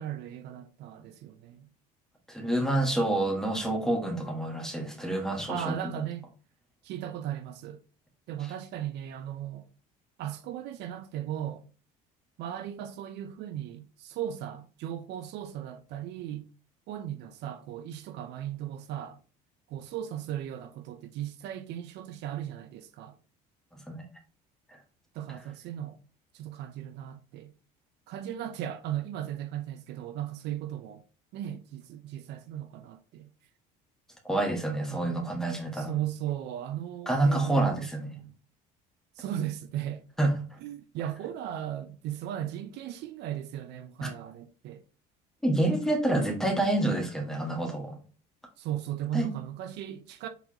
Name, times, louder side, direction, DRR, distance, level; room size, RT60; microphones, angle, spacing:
voice 1, 0.0-1.7 5.5-6.3 6.8-7.8 8.3-9.7 10.2-11.6 12.4-16.5 16.9-19.2 19.7-23.1 25.1-26.0 26.3-27.5 28.1-31.0 31.3-33.3 34.9-35.4 35.7-38.3 39.2-40.0 40.6-44.8 48.6-50.3, right 11 dB, 65° right, 0.5 m, -37 dB
voice 2, 2.3-6.1 23.9-24.0 34.2-36.0 37.1-38.1 40.2-40.6 44.0-44.1 45.4-48.0 49.1-49.3, right 1 dB, 5° left, 1.5 m, -28 dB
4.4 x 4.0 x 2.8 m
supercardioid pair, 90°, 19 cm